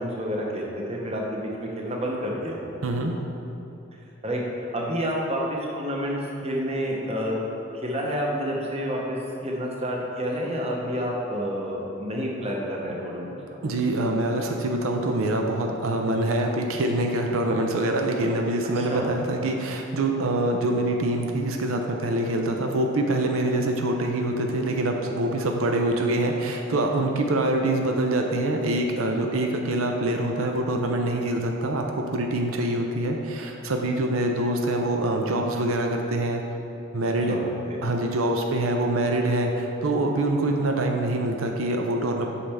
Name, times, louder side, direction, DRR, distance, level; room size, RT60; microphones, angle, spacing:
voice 1, 0.0-2.6 4.2-4.4 4.7-7.4 7.7-9.2 9.4-13.3 18.8-19.1 37.3-37.8, equal, 30° right, -2 dB, 0.9 m, -29 dB
voice 2, 2.8-3.2 13.6-36.4 36.9-37.4 37.8-42.3, right 1 dB, 85° right, 2 dB, 0.6 m, -25 dB
8.3 x 5.5 x 3.5 m, 2.8 s
head